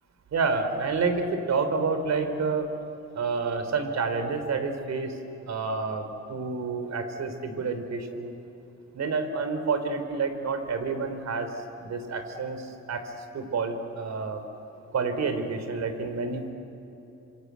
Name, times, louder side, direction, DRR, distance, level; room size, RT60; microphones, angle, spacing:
voice 1, 0.3-2.7 3.1-5.2 5.4-8.3 8.9-11.5 11.8-14.4 14.9-16.5, right 4 dB, 60° right, 8 dB, 3.4 m, -29 dB
28.0 x 26.0 x 8.2 m, 3.0 s
cardioid pair, 90°, 30 cm